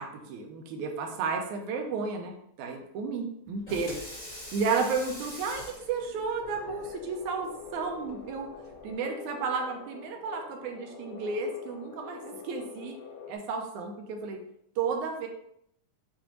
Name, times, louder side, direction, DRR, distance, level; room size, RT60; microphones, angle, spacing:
voice 1, 0.0-4.0 4.5-8.5 8.8-13.0 13.3-14.4 14.8-15.3, right 5 dB, 80° right, 3 dB, 2.0 m, -32 dB
Water tap faucet / Sink (filling or washing), 3.5-9.0, left 1 dB, 20° left, 1.2 m, -45 dB
sound 1, 6.4-13.4, left 6 dB, 85° left, 2.3 m, -45 dB
6.9 x 2.6 x 3.0 m, 0.73 s
omnidirectional pair, 3.5 m